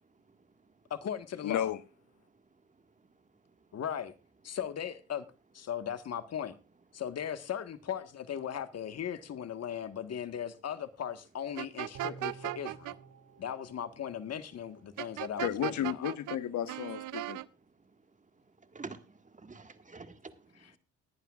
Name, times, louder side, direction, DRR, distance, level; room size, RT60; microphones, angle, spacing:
voice 1, 0.9-1.7 3.7-4.1 4.4-5.3 5.5-6.6 6.9-13.0 13.4-15.7 16.0-16.1, left 9 dB, 55° left, 1.5 m, -38 dB
voice 2, 1.4-1.8 15.4-17.4, left 11 dB, 70° left, 1.2 m, -33 dB
sound 1, 11.6-13.0 15.0-16.4 16.7-17.5, right 16 dB, 85° right, 0.7 m, -37 dB
sound 2, 11.9-15.3 15.6-15.7, right 5 dB, 70° right, 2.4 m, -53 dB
voice 3, 18.6-20.8, right 4 dB, 25° right, 1.8 m, -48 dB
19.5 x 11.0 x 2.4 m
cardioid pair, 90°, 30 cm